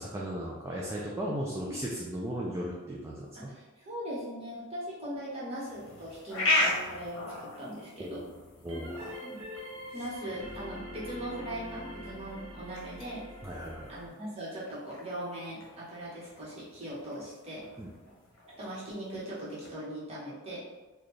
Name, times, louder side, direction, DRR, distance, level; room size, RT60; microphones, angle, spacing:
voice 1, 0.0-3.5 8.0-8.2 8.6-9.1 13.4-14.0 17.8-17.9, equal, 10° right, -4 dB, 0.3 m, -36 dB
voice 2, 3.3-8.2 9.2-9.5 9.9-13.2 13.9-17.6 18.6-20.6, right 1 dB, 30° right, -8 dB, 1.2 m, -40 dB
sound 1, 5.6-19.7, left 2 dB, 65° left, 0.8 m, -37 dB
sound 2, 8.7-14.1, left 1 dB, 85° right, 0.9 m, -44 dB
4.0 x 2.3 x 3.2 m, 1.2 s
head